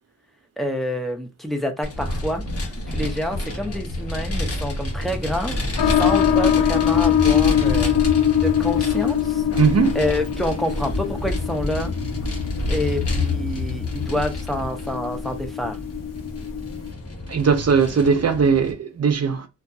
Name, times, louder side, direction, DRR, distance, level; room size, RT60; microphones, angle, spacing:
voice 1, 0.6-2.4 2.9-5.6 5.8-7.9 8.4-9.4 9.9-12.0 12.7-15.8, left 1 dB, ahead, 0.5 m, -27 dB
Vehicle, 1.8-18.7, left 2 dB, 50° left, 0.9 m, -28 dB
sound 1, 5.8-16.9, left 10 dB, 85° left, 0.5 m, -23 dB
voice 2, 9.6-10.0 17.3-19.5, right 6 dB, 55° right, 0.6 m, -19 dB
2.6 x 2.3 x 2.2 m
wide cardioid pair, 75°, 31 cm